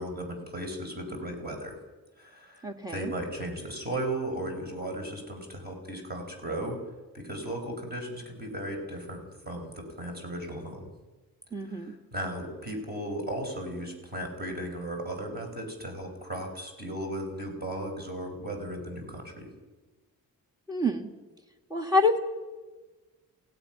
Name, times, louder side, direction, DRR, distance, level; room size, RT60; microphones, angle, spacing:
voice 1, 0.0-1.8 2.2-6.8 7.1-9.2 9.4-10.9 11.7-19.5, right 1 dB, 25° right, 2 dB, 5.0 m, -36 dB
voice 2, 2.6-3.1 11.5-11.9 20.7-21.1 21.7-22.2, left 2 dB, 10° right, 5 dB, 1.9 m, -27 dB
27.5 x 17.0 x 6.0 m, 1.2 s
wide cardioid pair, 135°, 36 cm